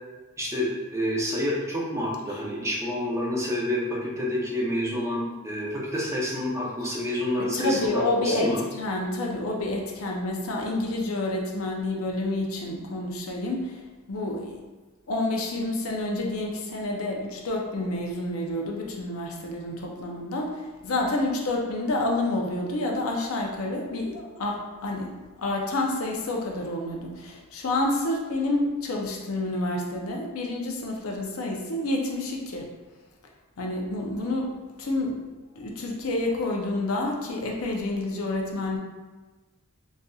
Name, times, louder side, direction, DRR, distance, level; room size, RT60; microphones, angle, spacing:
voice 1, 0.4-8.6, left 1 dB, 15° right, -4 dB, 0.6 m, -28 dB
voice 2, 7.5-13.8 14.1-14.6 15.1-20.6 20.8-32.6 33.6-34.5 34.8-35.2 35.6-38.8, left 2 dB, 80° left, -1 dB, 0.6 m, -28 dB
4.0 x 2.6 x 2.3 m, 1.2 s
head